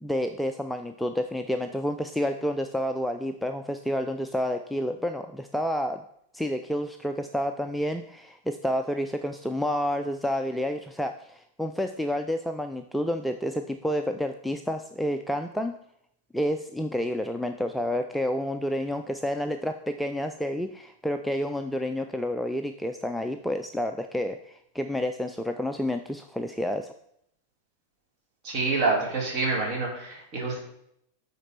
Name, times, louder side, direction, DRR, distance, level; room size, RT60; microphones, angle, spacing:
voice 1, 0.0-6.0 6.3-15.7 16.3-26.9, equal, ahead, 6 dB, 0.4 m, -29 dB
voice 2, 28.4-30.6, right 3 dB, 35° right, -1 dB, 2.6 m, -27 dB
9.0 x 4.0 x 4.4 m, 0.73 s
figure-of-eight pair, 90°, 0 cm